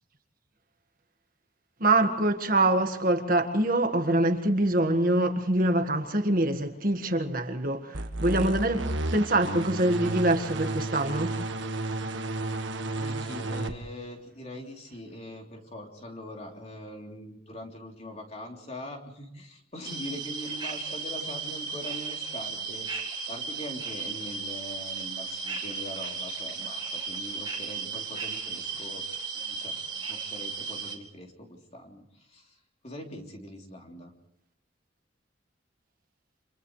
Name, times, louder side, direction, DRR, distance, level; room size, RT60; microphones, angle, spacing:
voice 1, 1.8-8.9 9.1-11.3, right 1 dB, 45° right, 1.7 m, -25 dB
sound 1, 7.9-13.7, right 2 dB, 75° right, 1.6 m, -32 dB
voice 2, 12.9-29.0 29.3-32.5 32.8-34.1, left 1 dB, 35° left, 3.4 m, -42 dB
sound 2, 19.8-31.0, right 5 dB, 25° right, 2.4 m, -35 dB
30.0 x 27.0 x 3.2 m
head